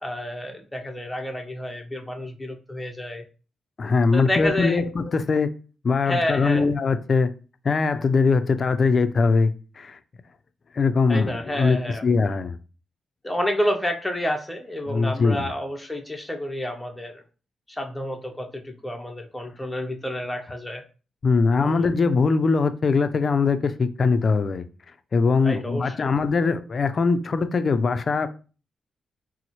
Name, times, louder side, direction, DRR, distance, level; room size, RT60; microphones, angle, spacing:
voice 1, 0.0-3.2 4.1-4.8 6.0-6.6 11.1-12.0 13.2-17.2 17.7-20.8 21.6-21.9 25.4-26.1, left 1 dB, 10° left, 0.6 m, -29 dB
voice 2, 3.8-5.5 5.8-7.3 7.6-10.0 10.7-12.6 14.9-15.5 21.2-24.6 25.1-28.3, left 4 dB, 50° left, 0.4 m, -21 dB
4.0 x 2.0 x 2.9 m
supercardioid pair, 55°, 0 cm